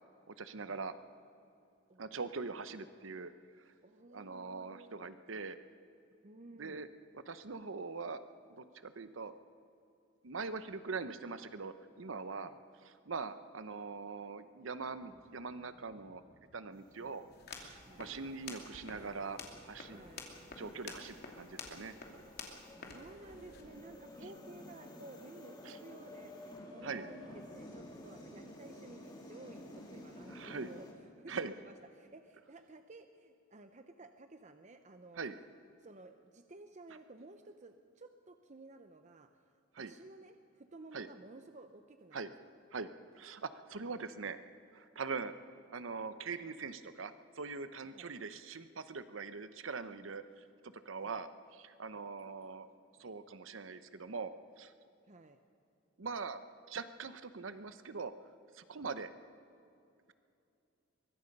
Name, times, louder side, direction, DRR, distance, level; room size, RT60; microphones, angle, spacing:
voice 1, 0.3-0.9 2.0-3.3 3.7-3.8 4.1-5.6 6.6-6.9 7.1-8.2 8.5-9.3 10.2-12.5 12.8-16.2 16.5-17.2 17.5-19.4 19.7-20.0 20.6-22.0 25.6-25.8 26.8-27.1 30.3-30.7 31.3-31.5 35.2-35.3 39.7-39.9 40.9-41.1 42.1-42.3 42.7-42.9 43.1-44.4 44.7-45.3 45.7-52.7 53.0-54.3 54.6-54.7 56.0-56.4 56.7-58.1 58.5-59.1, right 4 dB, 85° right, 12 dB, 0.9 m, -42 dB
voice 2, 3.8-5.1 6.2-6.8 12.3-12.6 17.8-18.1 19.9-20.3 22.7-30.9 31.2-35.2 35.8-39.3 39.8-42.3 47.9-48.1 51.0-51.2 55.1-55.4, right 2 dB, 40° right, 7 dB, 0.8 m, -54 dB
sound 1, 14.9-20.6, equal, 85° left, 7.1 m, -66 dB
sound 2, 16.7-30.9, left 1 dB, 20° left, 2.9 m, -53 dB
sound 3, 17.3-23.6, left 4 dB, 55° left, 2.7 m, -50 dB
23.0 x 22.0 x 5.4 m, 2.6 s
head